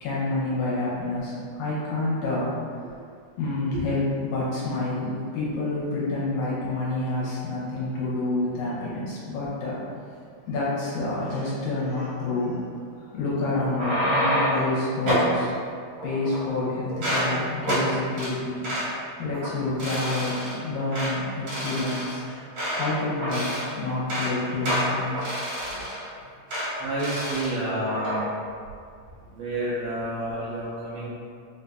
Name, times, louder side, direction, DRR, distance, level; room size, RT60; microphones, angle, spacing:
voice 1, 0.0-2.6 3.4-9.8 10.5-12.6 13.0-15.6 16.0-18.7 19.2-22.2 22.7-23.5 23.8-25.4 25.7-25.8, left 2 dB, 75° left, -7 dB, 2.0 m, -28 dB
sound 1, 13.6-14.7 15.1-15.3 16.0-16.6 16.9-17.3 17.6-17.9 18.2-18.3 18.6-18.9 19.3-19.5 19.8-20.5 20.9-21.1 21.5-22.9 23.2-23.7 24.0-24.3 24.6-26.1 26.5-26.7 27.0-27.5 27.8-28.2, equal, 60° right, 1.2 m, -28 dB
voice 2, 26.8-28.3 29.3-31.1, right 1 dB, 85° right, -9 dB, 1.6 m, -29 dB
4.9 x 2.6 x 2.3 m, 2.2 s
omnidirectional pair, 3.8 m